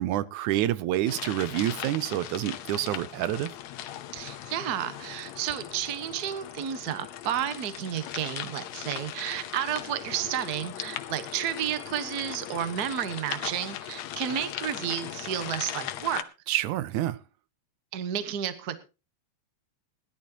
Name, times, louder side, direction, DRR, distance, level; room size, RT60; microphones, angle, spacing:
voice 1, 0.0-3.5 16.5-17.2, right 13 dB, 85° right, 16 dB, 2.2 m, -28 dB
sound 1, 1.0-16.2, left 12 dB, 75° left, 2.0 m, -39 dB
voice 2, 4.1-16.3 17.9-18.8, right 10 dB, 50° right, 11 dB, 1.2 m, -31 dB
20.5 x 11.5 x 2.9 m, 0.30 s
omnidirectional pair, 3.4 m